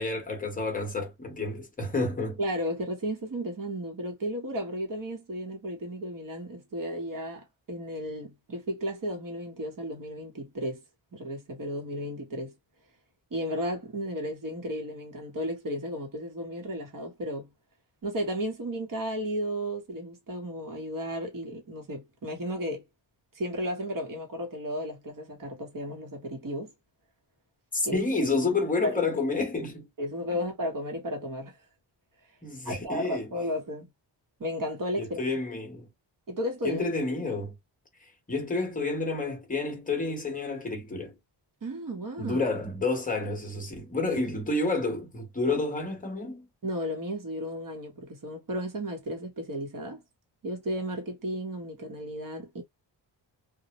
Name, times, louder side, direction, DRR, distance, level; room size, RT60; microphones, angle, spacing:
voice 1, 0.0-2.4 27.7-29.9 32.4-33.3 35.0-35.9 36.6-37.5 38.3-41.2 42.2-46.5, left 3 dB, 20° left, 0.8 m, -29 dB
voice 2, 2.4-10.8 11.1-12.5 13.3-17.5 18.0-22.8 23.3-26.7 27.8-28.0 28.8-29.1 30.0-31.6 32.6-33.9 34.4-35.2 36.3-36.9 41.6-42.4 46.6-50.0 50.4-52.6, equal, 45° right, 0.9 m, -34 dB
2.2 x 2.0 x 2.8 m
wide cardioid pair, 150°, 45 cm